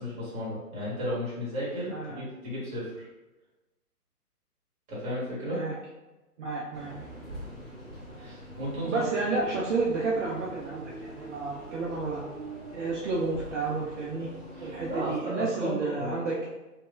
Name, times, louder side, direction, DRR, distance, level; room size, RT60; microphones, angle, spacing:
voice 1, 0.0-3.1 4.9-5.6 8.1-9.1 14.6-16.1, equal, 15° right, -8 dB, 1.1 m, -34 dB
voice 2, 1.9-2.3 5.5-5.7 6.4-6.9 8.9-12.2 12.7-14.3 14.6-16.5, right 3 dB, 50° right, -5 dB, 0.6 m, -31 dB
sound 1, 6.7-15.2, right 1 dB, ahead, 0.8 m, -44 dB
3.1 x 2.7 x 2.3 m, 1.1 s
hypercardioid pair, 135°, 47 cm